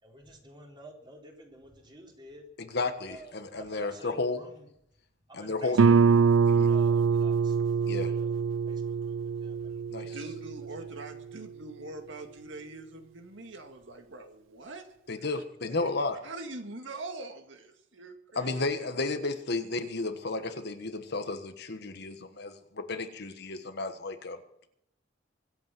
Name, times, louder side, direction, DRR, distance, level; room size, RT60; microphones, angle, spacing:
voice 1, 0.0-2.5 3.1-4.7 5.3-6.2 6.6-7.6 8.0-8.3 8.7-10.9 15.7-15.9, right 1 dB, 25° right, 0 dB, 3.9 m, -51 dB
voice 2, 2.6-4.4 5.3-5.8 6.5-6.7 7.8-8.1 9.9-10.2 15.1-16.2 18.3-24.4, left 3 dB, 60° left, 8 dB, 1.4 m, -33 dB
Guitar, 5.8-11.2, right 5 dB, 90° right, 0.5 m, -24 dB
voice 3, 10.1-14.9 16.2-18.6, right 2 dB, 70° right, 5 dB, 2.1 m, -43 dB
24.5 x 8.6 x 6.1 m, 0.76 s
head